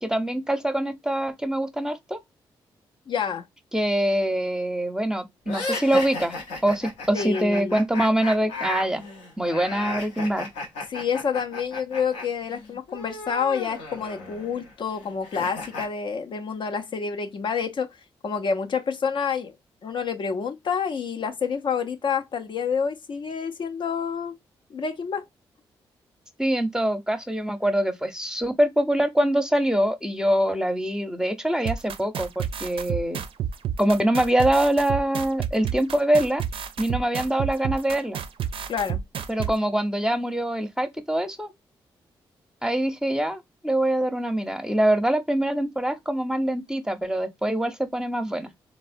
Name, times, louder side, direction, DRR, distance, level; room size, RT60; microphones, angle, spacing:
voice 1, 0.0-2.2 3.7-9.0 9.4-10.5 26.4-33.2 33.8-36.4 36.8-38.2 39.3-41.5 42.6-48.5, right 1 dB, 5° right, 0.6 m, -24 dB
voice 2, 3.1-3.5 7.1-7.8 10.9-18.0 18.2-19.5 19.8-24.4 24.7-25.3 38.7-39.0, left 6 dB, 50° left, 0.4 m, -28 dB
sound 1, 5.5-12.2 12.5-15.9, left 2 dB, 90° left, 0.6 m, -34 dB
sound 2, 31.6-39.5, right 8 dB, 60° right, 0.4 m, -29 dB
3.2 x 2.0 x 2.5 m
hypercardioid pair, 45°, 10 cm